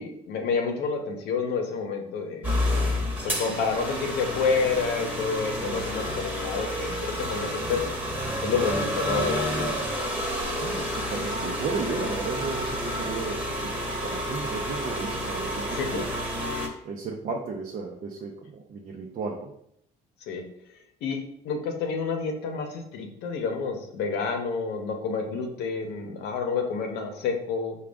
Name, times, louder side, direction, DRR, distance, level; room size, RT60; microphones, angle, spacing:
voice 1, 0.0-2.5 3.2-7.8 8.4-9.7 15.7-16.0 20.2-20.4 21.0-21.2 21.4-27.8, left 5 dB, 85° left, 3 dB, 0.7 m, -29 dB
sound 1, 2.4-16.7, equal, 10° right, 1.0 m, -30 dB
voice 2, 2.8-3.1 5.7-5.9 10.5-16.1 16.8-19.5, right 4 dB, 50° right, 0 dB, 0.6 m, -34 dB
4.9 x 2.3 x 3.4 m, 0.72 s
cardioid pair, 110°, 17 cm